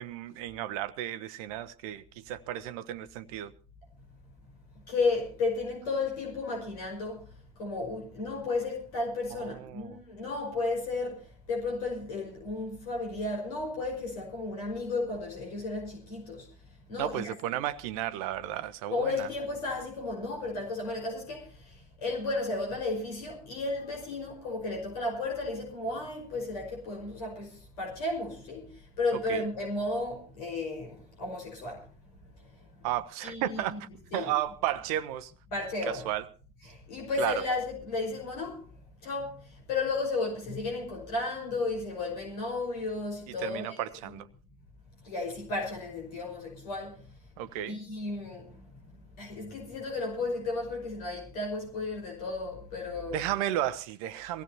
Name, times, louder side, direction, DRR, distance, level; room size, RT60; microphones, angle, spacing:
voice 1, 0.0-3.5 9.3-10.0 17.0-19.3 29.1-29.4 32.8-35.3 35.9-36.2 37.2-37.4 43.4-44.3 47.4-47.8 53.1-54.4, right 12 dB, 65° right, 0.8 m, -33 dB
voice 2, 4.9-16.5 16.9-17.3 18.9-31.9 32.3-32.7 33.2-33.8 34.1-34.3 35.5-36.1 36.7-38.6 39.0-43.8 45.0-47.0 47.7-53.2, left 3 dB, 70° left, 5.2 m, -33 dB
23.0 x 16.5 x 2.8 m
figure-of-eight pair, 60°, 20 cm